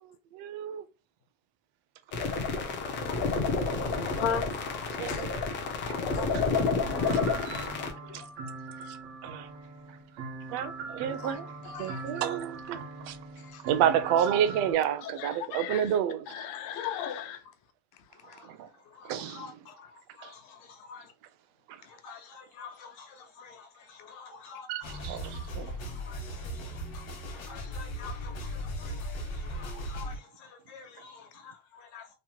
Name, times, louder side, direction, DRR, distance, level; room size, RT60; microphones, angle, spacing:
voice 1, 0.3-0.8 5.0-5.3 6.3-6.4 7.4-7.7 8.1-8.2 8.9-9.0 9.2-9.5 10.5-11.5 11.8-12.8 13.1-13.2 13.7-16.4 18.4-18.7 19.0-19.4 20.2-20.3 21.7-21.8 24.7-25.7, right 10 dB, 60° right, 0.5 m, -30 dB
sound 1, 2.1-7.9, left 4 dB, 30° left, 0.3 m, -30 dB
voice 2, 3.7-5.3 5.9-6.5 7.9-8.2 11.2-11.4 11.7-12.0 13.4-13.6 15.0-15.9 16.3-17.4, left 8 dB, 65° left, 0.7 m, -37 dB
sound 2, 6.8-14.7, right 3 dB, 85° right, 1.1 m, -41 dB
voice 3, 18.2-21.1 21.8-32.1, left 5 dB, 85° left, 1.2 m, -49 dB
sound 3, 24.8-30.2, equal, 50° left, 1.0 m, -37 dB
3.0 x 2.1 x 2.8 m
cardioid pair, 170°, 45 cm